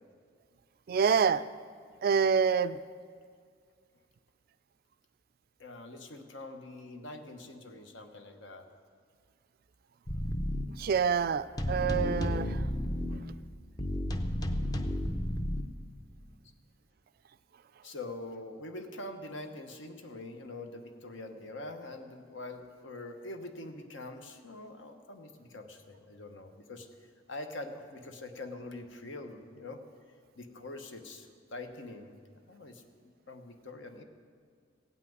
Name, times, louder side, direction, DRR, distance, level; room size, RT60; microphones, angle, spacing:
voice 1, 0.9-1.4 2.0-2.8 10.8-12.6, right 6 dB, 50° right, 16 dB, 0.3 m, -27 dB
voice 2, 5.6-8.7 17.8-26.9 27.3-29.8 30.4-32.2 32.5-32.8 33.3-34.0, left 2 dB, 70° left, 6 dB, 1.1 m, -44 dB
sound 1, 10.1-10.7 11.6-13.2 13.8-15.6, left 1 dB, 20° left, 0.6 m, -32 dB
16.5 x 5.8 x 9.4 m, 2.1 s
head